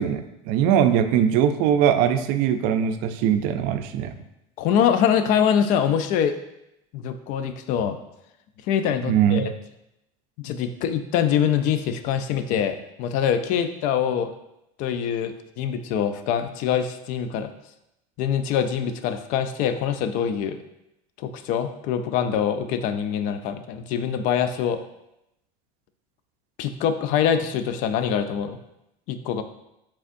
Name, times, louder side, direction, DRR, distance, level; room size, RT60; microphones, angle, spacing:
voice 1, 0.0-4.2 9.1-9.5, right 9 dB, 65° right, 9 dB, 0.4 m, -21 dB
voice 2, 4.6-6.4 6.9-8.0 8.7-9.5 10.4-14.3 14.8-17.5 18.2-20.6 21.2-24.8 26.6-28.6 29.1-29.4, left 8 dB, 60° left, 9 dB, 0.4 m, -24 dB
5.2 x 3.5 x 2.5 m, 0.87 s
supercardioid pair, 125°, 15 cm